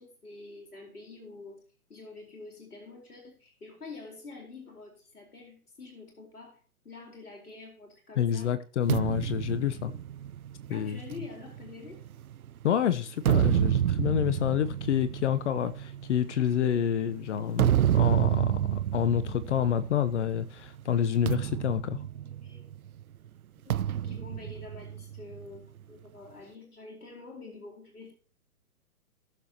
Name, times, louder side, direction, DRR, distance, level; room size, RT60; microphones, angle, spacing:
voice 1, 0.0-1.6 1.9-8.5 9.4-10.0 10.7-12.0 17.3-17.7 22.2-22.7 23.7-28.1, left 3 dB, 80° left, 4.5 m, -47 dB
voice 2, 8.2-9.9 10.7-11.0 12.6-22.0, left 9 dB, 50° left, 1.1 m, -28 dB
sound 1, 8.9-12.5 13.0-20.4 20.7-20.9 21.3-22.9 23.7-25.4, right 11 dB, 70° right, 0.6 m, -29 dB
19.5 x 7.1 x 3.0 m
figure-of-eight pair, 125°, 45 cm